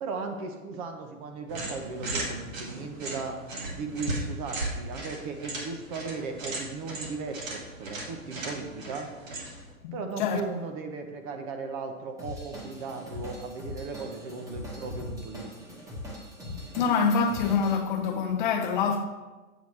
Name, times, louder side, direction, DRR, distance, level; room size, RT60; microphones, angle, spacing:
voice 1, 0.0-3.4 3.7-9.1 9.9-15.5, right 4 dB, 25° right, 0.6 m, -37 dB
sound 1, 1.5-9.7, right 2 dB, 65° right, 2.4 m, -36 dB
voice 2, 9.8-10.4 16.7-19.0, left 5 dB, 35° left, 0.6 m, -26 dB
Drum kit / Drum, 12.2-17.8, left 1 dB, 5° right, 1.2 m, -41 dB
8.0 x 6.9 x 3.2 m
hypercardioid pair, 130°, 43 cm